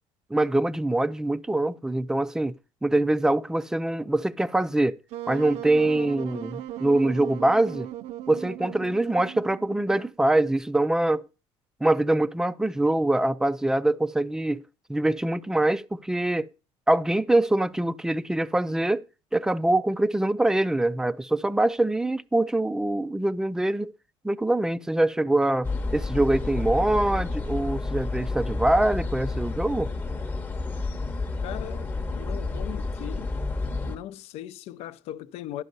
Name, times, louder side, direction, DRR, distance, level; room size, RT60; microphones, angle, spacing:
voice 1, 0.3-2.5 2.8-5.0 5.3-7.9 8.3-11.2 11.8-14.6 14.9-16.5 16.9-19.1 19.3-23.9 24.2-29.9, right 1 dB, 5° right, 0.4 m, -24 dB
Wind instrument woodwind instrument, 5.1-10.2, right 13 dB, 70° right, 0.4 m, -37 dB
sound 1, 25.6-34.0, left 3 dB, 15° left, 0.8 m, -30 dB
voice 2, 31.4-33.3 33.8-35.6, left 12 dB, 70° left, 0.5 m, -39 dB
11.0 x 5.4 x 5.3 m
cardioid pair, 120°, 11 cm